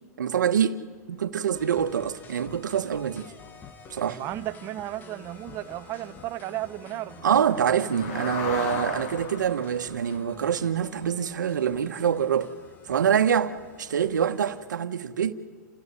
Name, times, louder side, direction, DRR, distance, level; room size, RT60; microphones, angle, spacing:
voice 1, 0.2-0.8 1.1-3.3 3.9-4.2 7.2-12.5 12.9-15.3, right 8 dB, 85° right, 1.2 m, -25 dB
sound 1, 1.0-1.1 1.5-1.6 1.8-2.0 2.4-2.7 3.1-3.2 3.6-3.7 3.8-4.0 4.3-14.7, left 6 dB, 50° left, 2.0 m, -41 dB
sound 2, 1.5-14.6, left 5 dB, 20° left, 1.1 m, -50 dB
voice 2, 4.1-7.2, right 16 dB, 30° right, 0.7 m, -34 dB
28.5 x 15.5 x 9.7 m
hypercardioid pair, 140°, 10 cm